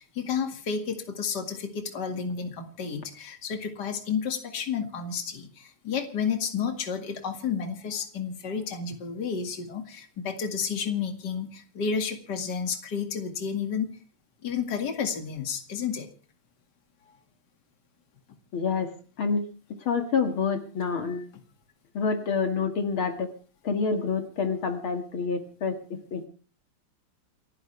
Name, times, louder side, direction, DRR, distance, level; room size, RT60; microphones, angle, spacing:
voice 1, 0.0-13.9 14.4-16.1, left 6 dB, 50° left, 6 dB, 2.7 m, -31 dB
voice 2, 18.5-18.9 19.2-19.5 19.9-21.3 21.9-23.3 23.6-26.3, left 5 dB, 70° left, 6 dB, 2.8 m, -27 dB
29.0 x 10.5 x 3.3 m, 0.38 s
omnidirectional pair, 2.4 m